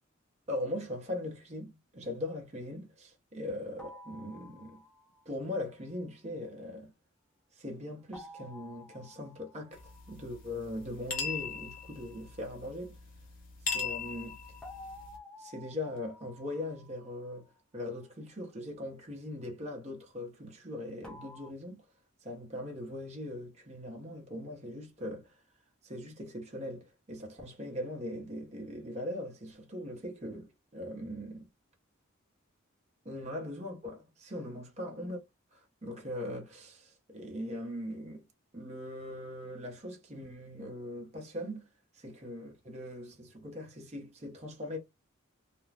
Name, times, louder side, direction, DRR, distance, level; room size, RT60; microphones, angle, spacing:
voice 1, 0.5-4.8 5.2-6.9 7.5-9.8 10.1-13.0 13.7-14.4 15.4-21.8 22.2-25.4 25.8-31.5 33.0-35.2 35.5-38.3 38.5-41.6 41.9-44.8, left 1 dB, 35° right, 0.8 m, -40 dB
sound 1, 3.8-5.3 8.1-10.6 14.6-17.8 21.0-21.5, left 1 dB, 5° left, 0.5 m, -52 dB
sound 2, 9.7-15.2, left 5 dB, 40° left, 0.8 m, -40 dB
2.4 x 2.2 x 3.2 m
head